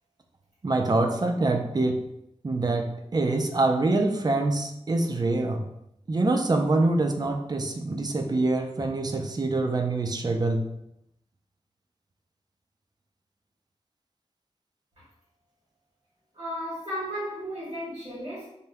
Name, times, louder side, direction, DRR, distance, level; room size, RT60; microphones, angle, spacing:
voice 1, 0.6-2.0 2.4-5.6 6.1-10.7, right 2 dB, 35° right, 4 dB, 0.4 m, -25 dB
voice 2, 16.3-18.5, equal, 55° right, -9 dB, 1.0 m, -34 dB
2.7 x 2.1 x 3.4 m, 0.80 s
wide cardioid pair, 85°, 12 cm